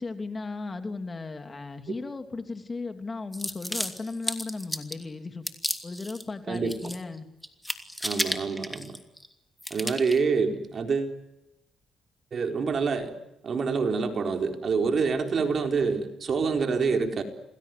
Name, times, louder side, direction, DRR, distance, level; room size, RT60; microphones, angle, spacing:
voice 1, 0.0-5.4 5.8-7.3, left 3 dB, 25° left, 7 dB, 3.0 m, -36 dB
sound 1, 3.3-5.0 5.5-6.2 6.5-7.2 7.4-9.3 9.6-10.2, equal, 5° left, 2.9 m, -33 dB
voice 2, 6.5-6.9 8.0-9.0 9.7-11.2 12.3-13.1 13.4-17.2, right 5 dB, 50° right, 4 dB, 4.3 m, -26 dB
28.0 x 20.5 x 9.4 m, 0.91 s
cardioid pair, 90°, 0 cm